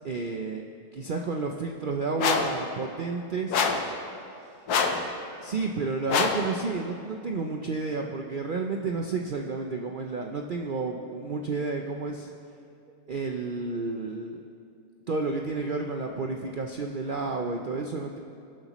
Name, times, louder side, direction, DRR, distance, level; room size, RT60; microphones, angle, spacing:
voice 1, 0.0-0.6 0.9-3.7 5.4-12.3 12.9-14.4 15.1-18.2, right 3 dB, 65° right, 2 dB, 0.5 m, -31 dB
sound 1, 2.2-2.6 3.5-3.9 4.7-5.1 6.1-6.5, left 5 dB, 85° left, 1.4 m, -25 dB
21.0 x 8.0 x 3.0 m, 2.6 s
omnidirectional pair, 1.6 m